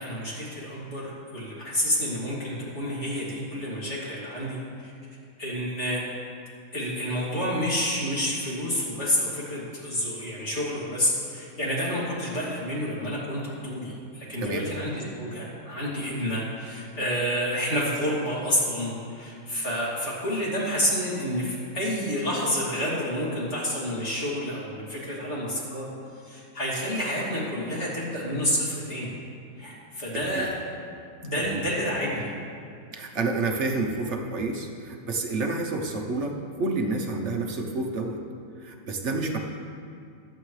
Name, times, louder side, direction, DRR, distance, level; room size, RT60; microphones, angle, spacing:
voice 1, 0.0-4.9 5.4-6.0 6.7-25.9 26.2-29.1 29.6-30.5 31.2-32.3, equal, 40° left, -7 dB, 3.0 m, -29 dB
voice 2, 30.1-30.4 31.5-31.6 32.9-38.2 38.6-39.4, right 3 dB, 50° right, 2 dB, 1.1 m, -29 dB
22.0 x 7.8 x 3.2 m, 2.4 s
omnidirectional pair, 1.8 m